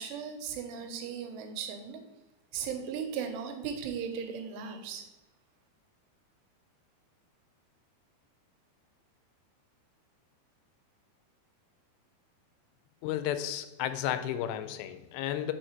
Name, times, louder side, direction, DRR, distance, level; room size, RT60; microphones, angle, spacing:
voice 1, 0.0-2.0 2.5-5.1, right 7 dB, 85° right, 6 dB, 2.9 m, -37 dB
voice 2, 13.0-15.5, left 11 dB, 90° left, 11 dB, 2.7 m, -33 dB
6.4 x 4.2 x 4.3 m, 0.99 s
omnidirectional pair, 4.8 m